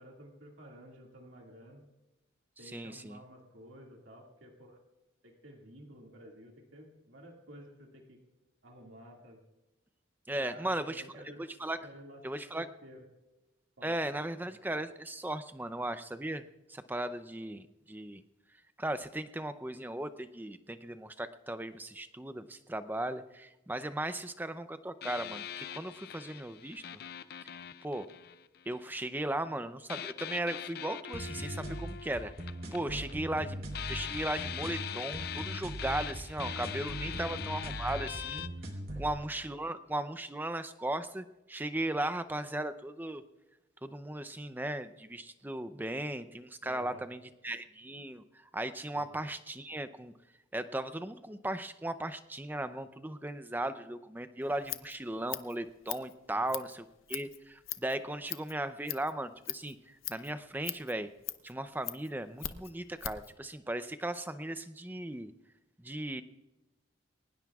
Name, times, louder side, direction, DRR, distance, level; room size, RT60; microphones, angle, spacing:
voice 1, 0.0-1.8 2.6-4.8 5.2-8.2 8.6-9.4 10.3-11.5 11.8-12.2 12.5-13.0 13.8-14.2 32.8-33.2 37.1-37.2 38.9-39.0 46.6-47.1 48.9-49.1 56.3-56.5, right 1 dB, 70° right, 0 dB, 2.1 m, -52 dB
voice 2, 2.6-3.2 10.3-11.8 12.2-12.7 13.8-18.2 18.8-27.0 27.8-28.1 28.7-32.3 32.7-38.5 39.0-43.2 43.8-50.1 50.5-61.1 61.4-65.3 65.8-66.2, right 1 dB, 10° right, 11 dB, 0.5 m, -37 dB
sound 1, 25.0-28.9 29.9-33.4 33.7-38.5, left 9 dB, 50° left, 0.4 m, -42 dB
sound 2, 31.1-39.1, right 1 dB, 50° right, 2.8 m, -40 dB
Scissors, 54.4-63.3, left 13 dB, 85° left, 0.7 m, -42 dB
22.0 x 19.5 x 2.4 m, 1.0 s
head